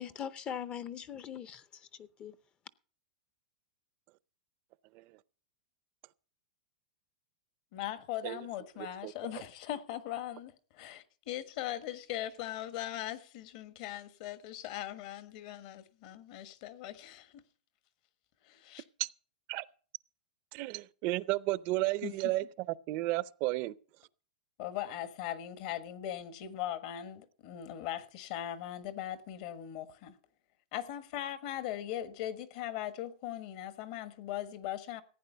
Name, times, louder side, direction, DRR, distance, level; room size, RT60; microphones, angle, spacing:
voice 1, 0.0-2.4, left 9 dB, 25° left, 0.6 m, -41 dB
voice 2, 7.7-17.4 18.4-18.8 22.0-22.3 24.6-30.2 30.7-35.0, left 12 dB, 50° left, 1.4 m, -40 dB
voice 3, 20.5-22.4 22.9-23.7, right 19 dB, 40° right, 0.5 m, -32 dB
15.5 x 9.0 x 5.7 m
hypercardioid pair, 140°, 4 cm